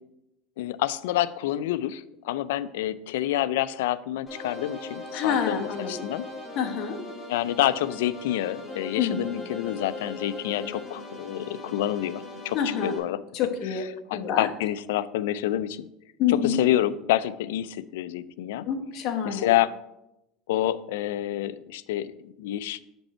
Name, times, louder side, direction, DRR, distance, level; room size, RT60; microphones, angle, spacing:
voice 1, 0.6-6.2 7.3-13.2 13.6-15.9 16.3-18.7 19.2-19.7 20.5-22.8, left 13 dB, 85° left, 16 dB, 0.4 m, -28 dB
sound 1, 4.3-13.0, left 2 dB, 15° left, 2.4 m, -39 dB
voice 2, 5.1-6.1 6.6-6.9 9.0-9.3 12.5-12.9 13.3-13.8 14.1-14.5 16.2-16.6 18.6-19.5, left 8 dB, 50° left, 3 dB, 1.2 m, -27 dB
8.3 x 5.3 x 4.4 m, 0.88 s
supercardioid pair, 130°, 0 cm